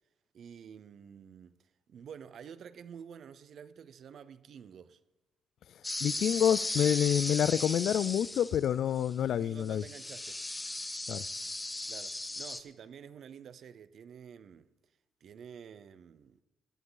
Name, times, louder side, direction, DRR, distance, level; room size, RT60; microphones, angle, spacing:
voice 1, 0.3-1.6 1.9-5.0 9.3-10.4 11.9-14.7 15.2-16.4, right 7 dB, 60° right, 0.7 m, -49 dB
sound 1, 5.8-8.7 9.0-9.1 9.6-12.6, left 2 dB, 15° left, 0.9 m, -37 dB
voice 2, 6.0-9.8 11.1-11.2, left 9 dB, 70° left, 0.4 m, -28 dB
17.5 x 11.0 x 4.0 m
cardioid pair, 90°, 0 cm